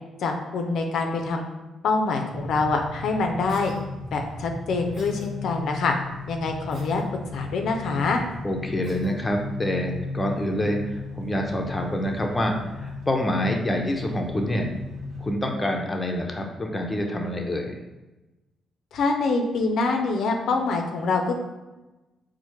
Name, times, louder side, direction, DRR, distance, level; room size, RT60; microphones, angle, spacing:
voice 1, 0.2-1.5 1.8-3.7 4.1-5.9 6.3-7.0 7.3-8.2 18.9-21.4, left 3 dB, 70° left, 3 dB, 0.4 m, -25 dB
sound 1, 2.3-15.3, left 3 dB, 70° right, 0.6 m, -36 dB
Cough, 3.5-3.8 4.9-5.3 6.7-7.1 8.8-9.1, right 1 dB, 50° right, 1.0 m, -46 dB
voice 2, 8.4-14.7 15.2-17.7, left 1 dB, 15° left, 1 dB, 0.5 m, -27 dB
4.2 x 2.1 x 3.0 m, 1.1 s
cardioid pair, 90°, 0 cm